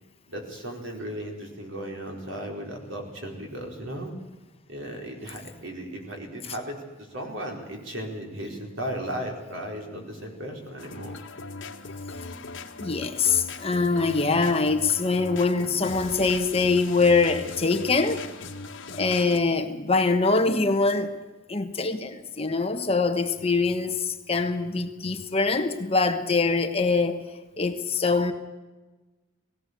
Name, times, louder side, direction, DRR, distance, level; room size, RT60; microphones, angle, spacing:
voice 1, 0.3-4.1 4.7-6.9 7.1-11.1, equal, 70° right, 4.6 m, -36 dB
sound 1, 10.8-19.4, left 3 dB, 65° left, 1.9 m, -39 dB
voice 2, 12.8-18.2 18.9-21.1 21.5-27.2 27.6-28.3, left 4 dB, 30° left, 1.3 m, -23 dB
18.5 x 17.5 x 8.2 m
head